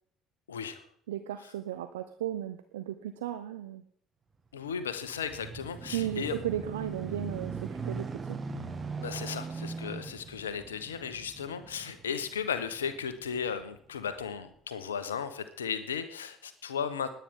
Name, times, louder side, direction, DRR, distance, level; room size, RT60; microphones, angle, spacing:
voice 1, 0.5-0.8 4.5-6.4 9.0-17.2, left 7 dB, 80° left, 12 dB, 1.1 m, -35 dB
voice 2, 1.1-3.8 5.9-8.4, right 11 dB, 75° right, 9 dB, 0.7 m, -35 dB
sound 1, 4.7-13.5 14.1-14.2, right 4 dB, 30° right, 1.8 m, -40 dB
20.0 x 9.3 x 3.8 m, 0.63 s
figure-of-eight pair, 60°, 0 cm